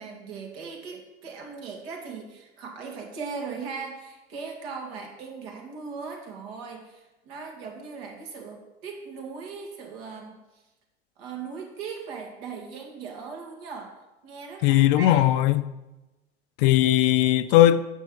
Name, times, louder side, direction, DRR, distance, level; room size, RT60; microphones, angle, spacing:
voice 1, 0.0-10.6 11.2-15.4, right 5 dB, 65° right, 1.8 m, -39 dB
voice 2, 14.6-15.7 16.6-17.8, left 13 dB, 55° left, 0.5 m, -19 dB
8.1 x 6.2 x 3.7 m
hypercardioid pair, 85°, 33 cm